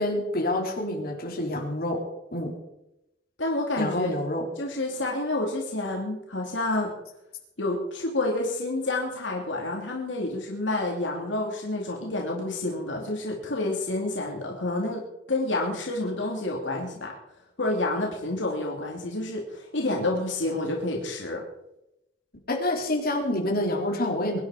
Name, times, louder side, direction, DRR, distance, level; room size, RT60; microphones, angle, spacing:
voice 1, 0.0-2.0 2.3-2.5 3.8-4.5 22.5-24.4, left 1 dB, 50° left, 0 dB, 3.6 m, -27 dB
voice 2, 3.4-4.1 4.6-6.9 7.6-15.0 15.3-17.1 17.6-21.4, left 2 dB, 75° left, -1 dB, 2.7 m, -29 dB
23.0 x 10.0 x 5.0 m, 0.90 s
head